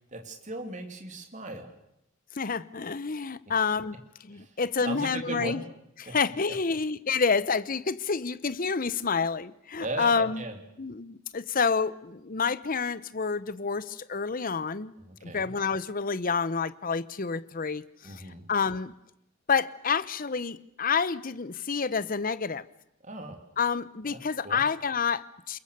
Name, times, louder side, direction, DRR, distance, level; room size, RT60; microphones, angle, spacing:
voice 1, 0.1-1.7 4.3-4.5 4.8-5.6 6.1-6.2 9.8-10.6 15.0-15.5 18.0-18.4 23.0-23.4 24.1-24.2 24.4-24.6, right 2 dB, 40° right, 4 dB, 3.1 m, -37 dB
voice 2, 2.4-4.0 4.2-5.6 6.0-10.4 10.8-14.9 15.2-18.2 18.5-18.9 19.5-22.6 23.6-25.6, left 5 dB, 45° left, 15 dB, 0.8 m, -28 dB
28.5 x 22.0 x 6.8 m, 0.82 s
head